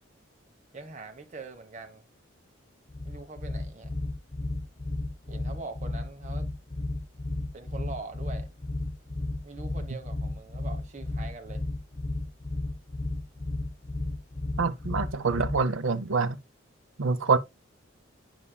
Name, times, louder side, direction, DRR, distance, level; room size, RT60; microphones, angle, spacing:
voice 1, 0.7-2.1 3.0-3.9 5.3-6.5 7.5-8.5 9.4-11.6, right 3 dB, 35° right, 1.1 m, -43 dB
sound 1, 2.9-15.8, left 2 dB, 25° left, 0.5 m, -33 dB
voice 2, 14.6-16.4 17.0-17.4, right 4 dB, 80° right, 0.7 m, -26 dB
8.4 x 6.1 x 2.2 m
head